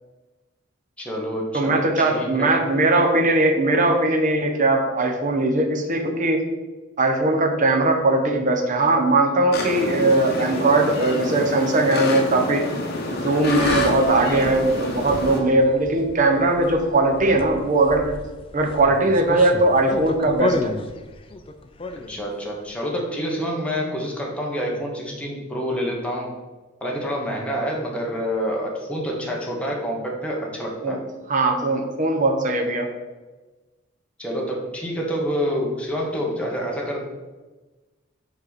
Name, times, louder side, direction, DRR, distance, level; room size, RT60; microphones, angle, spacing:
voice 1, 1.0-1.7 2.0-2.5 22.1-26.3 26.8-31.0 34.2-37.0, equal, 5° left, -2 dB, 1.1 m, -27 dB
voice 2, 1.5-6.4 7.0-12.6 13.1-18.2 18.5-20.7 30.8-31.0 31.3-32.9, right 2 dB, 40° right, 3 dB, 0.8 m, -20 dB
sound 1, 9.5-15.4, left 2 dB, 55° left, 1.0 m, -27 dB
sound 2, 13.4-22.4, left 2 dB, 25° left, 0.4 m, -33 dB
5.3 x 4.7 x 4.1 m, 1.2 s
head